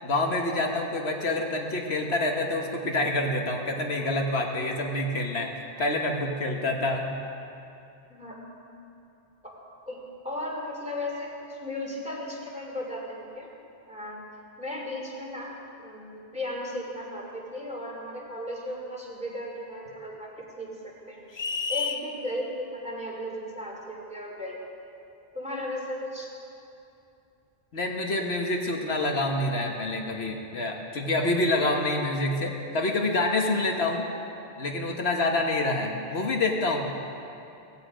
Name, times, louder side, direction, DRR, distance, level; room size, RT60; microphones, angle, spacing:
voice 1, 0.0-5.5 5.8-7.1 27.7-34.1 34.6-36.8, left 2 dB, 75° left, 1 dB, 1.6 m, -27 dB
voice 2, 8.1-8.5 9.4-13.5 13.9-14.3 14.6-15.5 15.8-20.3 20.6-21.2 21.7-24.7 25.3-26.3, left 1 dB, 5° right, -3 dB, 3.1 m, -36 dB
sound 1, 21.3-22.1, left 5 dB, 35° left, 0.5 m, -29 dB
17.5 x 16.0 x 5.1 m, 2.7 s
omnidirectional pair, 1.1 m